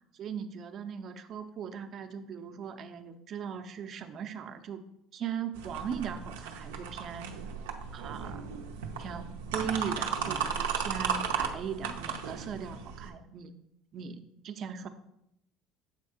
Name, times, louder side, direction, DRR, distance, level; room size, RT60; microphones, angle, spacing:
voice 1, 0.1-4.8 5.1-7.3 7.9-8.4 9.0-13.5 13.9-14.9, right 7 dB, 50° right, 8 dB, 0.7 m, -39 dB
sound 1, 5.5-13.1, right 6 dB, 90° right, 0.6 m, -35 dB
7.5 x 3.4 x 5.0 m, 0.80 s
supercardioid pair, 80°, 0 cm